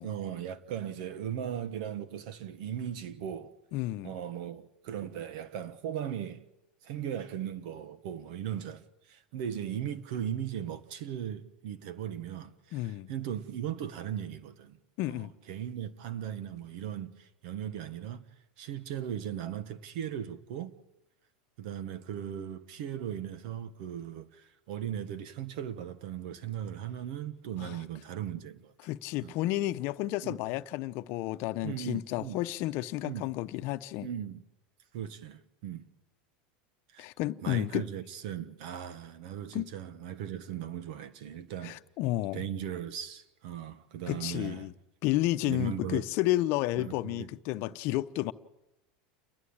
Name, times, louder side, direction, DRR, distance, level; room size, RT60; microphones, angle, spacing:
voice 1, 0.0-3.5 4.0-6.4 6.8-14.8 15.1-18.3 18.6-20.7 21.6-28.7 29.2-29.3 30.2-30.4 31.6-32.4 33.0-33.3 34.0-34.4 34.9-35.8 36.9-37.1 37.4-41.8 42.3-44.7 45.4-46.1 46.8-47.3, right 10 dB, 70° right, 1.4 m, -38 dB
voice 2, 3.7-4.1 12.7-13.1 15.0-15.3 27.6-27.8 28.9-34.1 37.0-37.9 39.5-39.7 41.6-42.4 44.1-44.7 45.0-48.3, left 16 dB, 55° left, 0.8 m, -31 dB
29.5 x 11.5 x 8.8 m
supercardioid pair, 125°, 5 cm